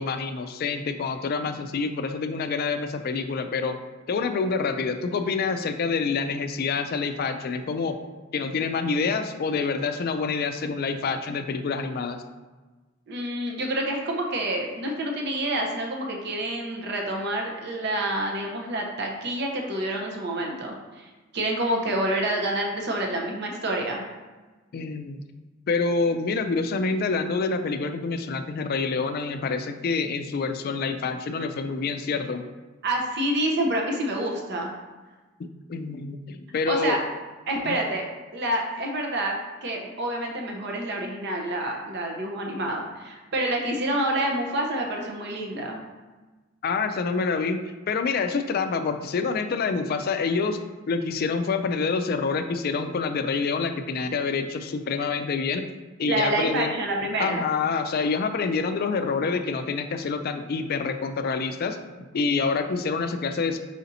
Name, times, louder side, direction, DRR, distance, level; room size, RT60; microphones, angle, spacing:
voice 1, 0.0-3.8 4.1-8.0 8.3-12.2 24.7-25.2 25.7-32.5 35.4-37.0 37.6-37.7 46.6-47.6 47.9-50.6 50.9-55.7 56.0-56.7 57.2-63.6, left 4 dB, 50° left, 8 dB, 0.3 m, -27 dB
voice 2, 13.1-24.0 32.8-34.7 36.7-37.0 37.5-38.0 38.3-45.8 56.0-57.4, right 1 dB, 55° right, 0 dB, 0.7 m, -28 dB
4.9 x 2.7 x 4.0 m, 1.3 s
head